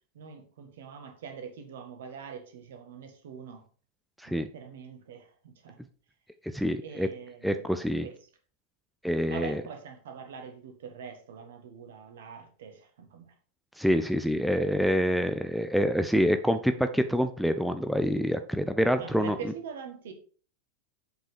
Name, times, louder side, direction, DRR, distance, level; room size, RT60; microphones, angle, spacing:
voice 1, 0.2-3.6 4.3-5.8 6.8-7.7 8.0-8.2 9.3-13.3 19.0-20.1, right 6 dB, 60° right, 1.7 m, -43 dB
voice 2, 6.5-7.1 7.4-8.1 9.0-9.6 13.8-19.4, equal, ahead, 0.5 m, -26 dB
7.5 x 5.3 x 5.0 m
figure-of-eight pair, 90°, 0 cm